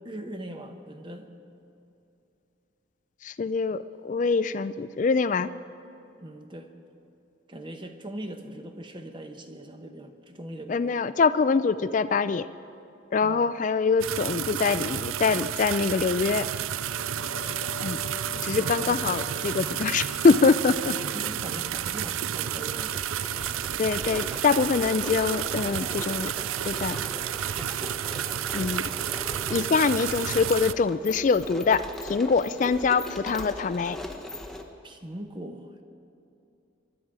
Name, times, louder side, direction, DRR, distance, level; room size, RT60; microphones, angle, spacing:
voice 1, 0.0-1.3 6.2-6.7 7.5-11.0 13.2-13.5 17.2-17.5 18.2-19.0 20.9-23.0 27.5-27.9 34.8-35.8, right 1 dB, 25° right, 6 dB, 0.9 m, -41 dB
voice 2, 3.2-5.5 10.7-12.5 13.1-16.5 17.8-18.0 18.4-20.9 23.8-26.3 26.7-27.0 28.5-28.8 29.5-34.0, left 4 dB, 40° left, 13 dB, 0.3 m, -24 dB
sound 1, 14.0-30.7, right 10 dB, 85° right, 0.4 m, -31 dB
sound 2, 16.5-25.1 25.4-25.5, left 3 dB, 75° left, 0.9 m, -44 dB
sound 3, 19.0-19.1 20.1-20.9 21.1-21.2 21.7-34.6, left 1 dB, 5° left, 0.8 m, -40 dB
24.5 x 11.5 x 4.8 m, 2.8 s
head